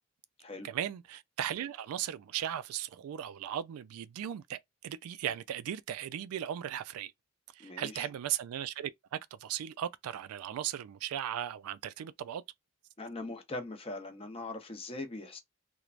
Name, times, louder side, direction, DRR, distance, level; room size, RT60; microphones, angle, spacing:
voice 1, 0.6-7.1 7.5-12.4, right 10 dB, 85° right, 0.3 m, -37 dB
voice 2, 7.6-8.1 13.0-15.4, left 2 dB, 25° left, 0.6 m, -41 dB
3.1 x 2.1 x 2.4 m
head